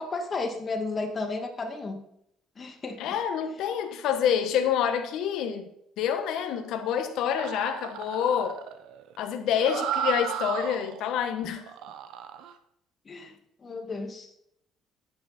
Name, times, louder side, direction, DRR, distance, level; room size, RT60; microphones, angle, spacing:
voice 1, 0.0-2.0 2.6-3.1 13.1-14.3, left 3 dB, 30° left, 4 dB, 2.1 m, -33 dB
voice 2, 3.0-5.7 6.0-8.6 9.2-11.7, left 8 dB, 75° left, 6 dB, 1.2 m, -27 dB
sound 1, 7.3-11.1 11.6-12.5, right 8 dB, 75° right, 1.0 m, -34 dB
10.5 x 9.5 x 4.3 m, 0.75 s
cardioid pair, 110°, 0 cm